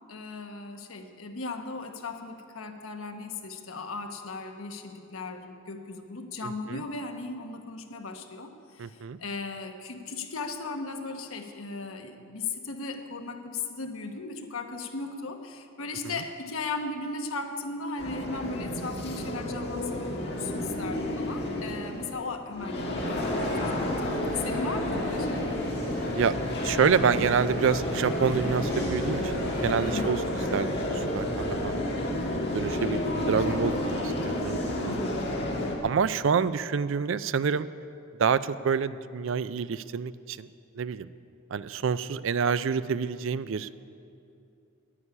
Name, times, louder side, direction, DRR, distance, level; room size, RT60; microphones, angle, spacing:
voice 1, 0.1-25.6 29.8-30.2 34.8-35.2, left 3 dB, 75° left, 5 dB, 1.1 m, -37 dB
voice 2, 6.4-6.8 8.8-9.2 24.0-24.2 26.2-26.4 26.6-30.2 30.5-32.2 32.5-34.9 35.8-37.7 38.2-40.5 40.8-41.1 41.5-43.9, right 6 dB, 65° right, 15 dB, 0.4 m, -28 dB
sound 1, 18.0-35.8, left 1 dB, 50° left, 1.8 m, -31 dB
sound 2, 22.9-30.0, equal, 5° left, 3.7 m, -37 dB
sound 3, 28.1-33.6, equal, 20° left, 4.0 m, -42 dB
9.8 x 9.6 x 9.9 m, 2.6 s
head